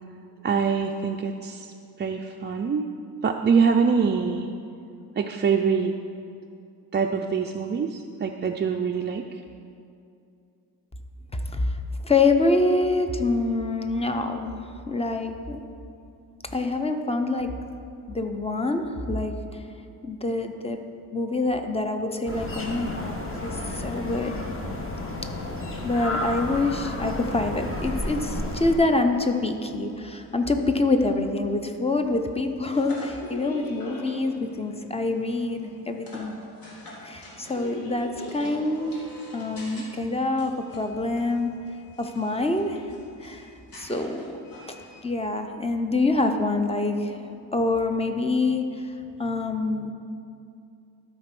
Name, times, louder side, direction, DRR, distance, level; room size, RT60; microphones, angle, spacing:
voice 1, 0.4-1.7 2.0-2.9 3.2-4.5 5.2-6.0 6.9-9.4, right 5 dB, 30° right, 2 dB, 0.4 m, -24 dB
voice 2, 11.3-11.8 12.0-15.6 16.5-17.5 18.1-19.3 20.0-20.8 21.1-24.4 25.8-36.4 37.0-38.9 39.3-41.5 42.0-42.8 43.2-43.5 43.7-44.3 45.0-48.9 49.2-49.9, left 2 dB, 15° left, 6 dB, 0.6 m, -26 dB
sound 1, 22.3-28.8, left 1 dB, 35° left, 1.2 m, -32 dB
sound 2, 28.9-45.0, left 1 dB, 65° left, 2.3 m, -45 dB
13.0 x 4.5 x 5.9 m, 2.5 s
cardioid pair, 125°, 38 cm